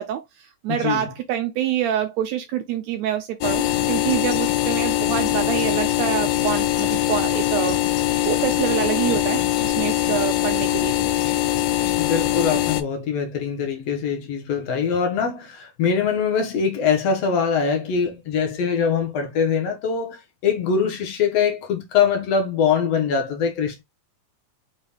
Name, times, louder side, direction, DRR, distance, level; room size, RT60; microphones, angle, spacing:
voice 1, 0.0-11.1, right 11 dB, 85° right, 1.6 m, -26 dB
voice 2, 0.7-1.1 12.0-23.8, left 6 dB, 70° left, 1.6 m, -23 dB
sound 1, 3.4-12.8, left 14 dB, 85° left, 1.5 m, -22 dB
5.5 x 2.2 x 3.3 m
omnidirectional pair, 3.6 m